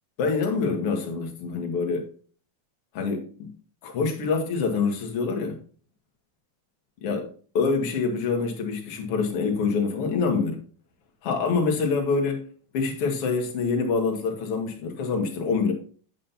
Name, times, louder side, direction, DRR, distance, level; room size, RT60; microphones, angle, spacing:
voice 1, 0.2-2.1 2.9-3.5 3.8-5.6 7.0-7.3 7.5-10.6 11.2-12.4 12.7-15.7, left 4 dB, 45° left, 2.1 m, -26 dB
8.6 x 7.6 x 2.8 m
omnidirectional pair, 4.5 m